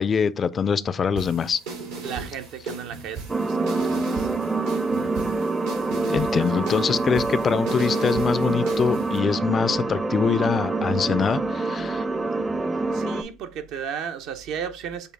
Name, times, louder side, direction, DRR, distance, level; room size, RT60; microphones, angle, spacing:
voice 1, 0.0-1.6 6.1-12.1, left 6 dB, 35° left, 0.3 m, -24 dB
sound 1, 1.2-9.2, right 4 dB, 90° right, 2.1 m, -37 dB
voice 2, 2.0-4.3 6.3-6.8 12.9-15.1, right 7 dB, 70° right, 0.7 m, -35 dB
sound 2, 3.3-13.2, right 3 dB, 15° right, 0.5 m, -26 dB
6.8 x 2.3 x 3.4 m
supercardioid pair, 90°, 0 cm